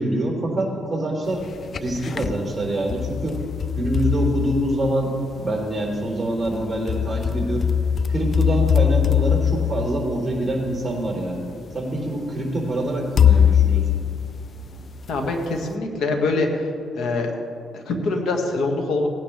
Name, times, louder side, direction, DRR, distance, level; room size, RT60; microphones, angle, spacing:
voice 1, 0.0-1.4 1.8-3.4 3.7-7.7 8.1-11.4 11.7-13.9, right 1 dB, 15° right, -3 dB, 3.5 m, -25 dB
sound 1, 1.4-2.4 2.9-5.3 6.5-10.9 11.7-11.8 13.2-15.1, left 8 dB, 45° left, 0.4 m, -22 dB
voice 2, 15.1-16.7 16.9-17.3 17.7-19.1, left 3 dB, 75° left, 3 dB, 1.8 m, -24 dB
18.5 x 10.0 x 3.4 m, 2.4 s
cardioid pair, 90°, 0 cm